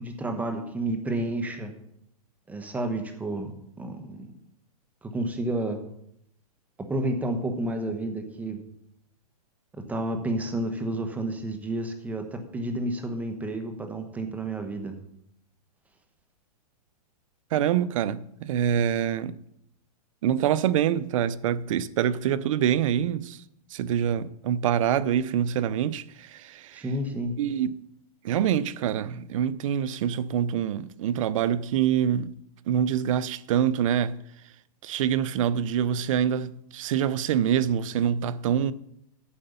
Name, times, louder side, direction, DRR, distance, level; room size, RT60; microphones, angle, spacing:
voice 1, 0.0-1.7 2.5-3.5 3.8-4.3 5.0-5.8 6.9-8.6 9.7-15.0 26.7-27.3, right 1 dB, 10° right, 1.2 m, -30 dB
voice 2, 17.5-19.4 20.2-23.4 23.7-26.9 27.4-27.8 28.2-32.3 32.7-34.2 34.8-38.7, right 9 dB, 55° right, 0.6 m, -25 dB
9.8 x 6.6 x 6.8 m
hypercardioid pair, 145°, 20 cm